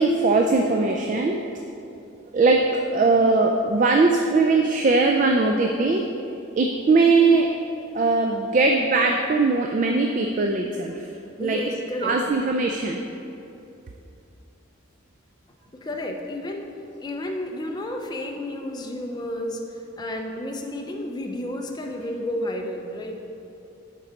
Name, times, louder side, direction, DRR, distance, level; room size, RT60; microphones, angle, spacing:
voice 1, 0.0-1.4 2.3-6.0 6.6-7.5 7.9-11.1 11.4-11.6 12.0-13.0, right 3 dB, 35° right, 3 dB, 0.3 m, -20 dB
voice 2, 11.4-12.2 15.7-16.7 17.0-23.2, left 1 dB, 20° left, 2 dB, 0.5 m, -31 dB
6.9 x 4.6 x 5.1 m, 2.7 s
head